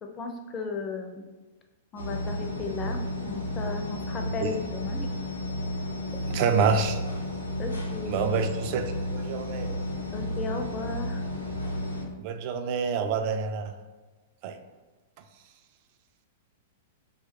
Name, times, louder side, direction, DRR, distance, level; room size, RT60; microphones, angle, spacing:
voice 1, 0.0-1.3 1.9-5.1 7.6-8.2 10.1-11.2, left 4 dB, 25° left, 4 dB, 0.4 m, -35 dB
sound 1, 2.0-12.0, left 1 dB, 90° left, 0.6 m, -32 dB
voice 2, 6.3-7.0 8.1-9.8 12.2-13.7 14.4-14.6, right 5 dB, 45° right, 7 dB, 0.3 m, -27 dB
2.8 x 2.2 x 3.5 m, 1.2 s
figure-of-eight pair, 105°, 0 cm